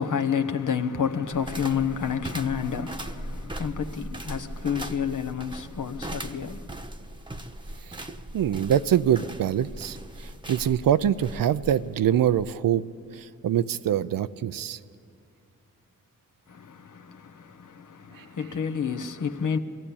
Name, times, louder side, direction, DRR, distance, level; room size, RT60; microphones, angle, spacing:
voice 1, 0.0-6.7 16.5-19.6, left 7 dB, 65° left, 1.2 m, -29 dB
sound 1, 1.3-12.6, right 1 dB, 15° right, 1.1 m, -39 dB
voice 2, 8.3-10.0 10.5-12.8 13.1-14.8, right 10 dB, 75° right, 0.6 m, -24 dB
22.0 x 15.5 x 8.6 m
cardioid pair, 55°, 34 cm